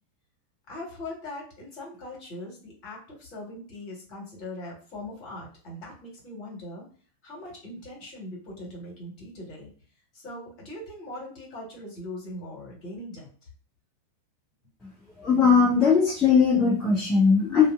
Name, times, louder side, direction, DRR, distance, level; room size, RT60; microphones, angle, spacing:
voice 1, 0.7-6.8 7.2-9.7 10.1-13.3, left 1 dB, 40° left, -3 dB, 1.4 m, -40 dB
voice 2, 15.2-17.7, left 5 dB, 20° left, -3 dB, 0.6 m, -19 dB
2.5 x 2.3 x 2.4 m, 0.43 s
figure-of-eight pair, 90°, 0 cm